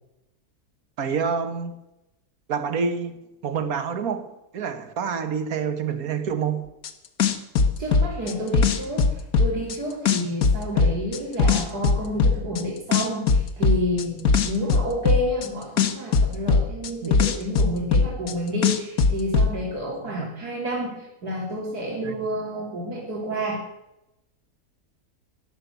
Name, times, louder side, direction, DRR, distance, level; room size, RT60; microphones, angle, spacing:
voice 1, 1.0-1.8 2.5-3.2 3.4-6.6 17.0-17.1 20.1-20.3 22.0-22.1, right 6 dB, 70° right, 1.7 m, -27 dB
sound 1, 6.8-6.9 7.2-9.8 10.1-12.6 12.9-15.5 15.8-18.3 18.6-19.5, left 5 dB, 70° left, 1.6 m, -19 dB
voice 2, 7.8-23.6, equal, 85° right, 3.6 m, -29 dB
13.5 x 11.0 x 8.0 m
omnidirectional pair, 1.6 m